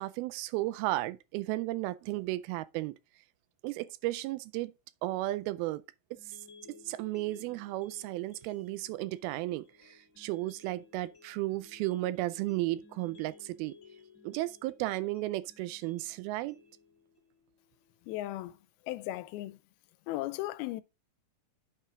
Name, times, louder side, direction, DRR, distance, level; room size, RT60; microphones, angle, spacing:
voice 1, 0.0-2.9 3.6-4.7 5.0-5.8 6.9-13.8 14.2-16.6, right 17 dB, 85° right, 2.4 m, -34 dB
sound 1, 6.1-18.2, left 5 dB, 35° left, 1.3 m, -58 dB
voice 2, 18.1-18.6 18.9-19.6 20.1-20.8, left 16 dB, 90° left, 2.4 m, -36 dB
8.5 x 5.7 x 3.7 m
omnidirectional pair, 4.3 m